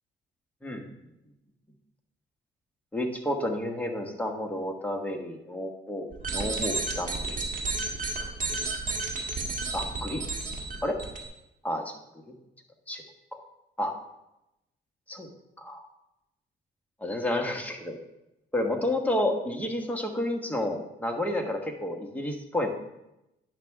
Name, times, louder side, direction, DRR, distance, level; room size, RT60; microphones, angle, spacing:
voice 1, 0.6-0.9 2.9-7.3 8.5-8.6 9.7-10.2 10.8-11.0 11.6-12.0 12.3-12.4 12.9-13.0 13.3-13.4 13.8-13.9 15.1-15.3 15.6-15.9 17.0-18.0 18.5-22.7, left 1 dB, 5° left, 2 dB, 1.4 m, -30 dB
sound 1, 6.1-11.2, right 3 dB, 40° right, 1.7 m, -32 dB
10.5 x 6.0 x 3.5 m, 0.89 s
cardioid pair, 90°, 20 cm